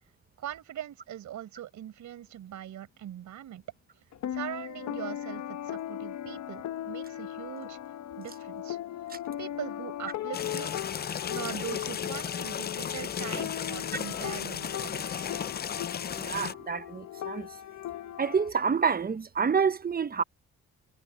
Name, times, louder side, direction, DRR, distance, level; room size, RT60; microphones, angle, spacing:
voice 1, 0.4-3.6 4.3-7.8 8.2-8.8 9.4-10.7 11.3-15.3, right 11 dB, 75° right, 5.0 m, -41 dB
sound 1, 4.1-18.5, left 12 dB, 65° left, 1.0 m, -38 dB
sound 2, 10.3-16.5, left 8 dB, 35° left, 0.5 m, -35 dB
voice 2, 16.2-17.5 18.2-20.2, right 6 dB, 30° right, 1.0 m, -28 dB
cardioid pair, 90°, 30 cm